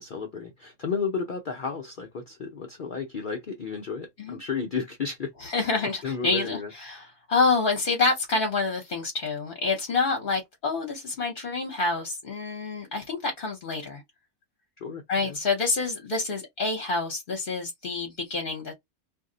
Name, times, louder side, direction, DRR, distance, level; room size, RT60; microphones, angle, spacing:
voice 1, 0.0-5.6 6.0-7.1 14.8-15.4, left 5 dB, 70° left, 0.4 m, -33 dB
voice 2, 5.4-14.0 15.1-18.7, left 3 dB, 45° left, 0.8 m, -27 dB
2.6 x 2.0 x 3.7 m
omnidirectional pair, 1.6 m